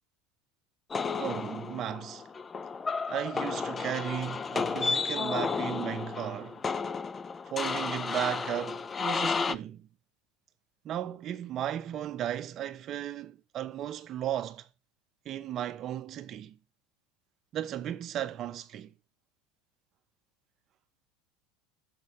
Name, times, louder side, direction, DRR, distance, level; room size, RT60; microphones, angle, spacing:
sound 1, 0.9-9.6, left 5 dB, 25° left, 0.4 m, -32 dB
voice 1, 1.1-2.2 3.1-6.6 7.5-9.9 10.8-14.7 15.3-16.6 17.5-18.9, right 11 dB, 45° right, 0.8 m, -35 dB
6.8 x 3.9 x 6.2 m
supercardioid pair, 100°, 0 cm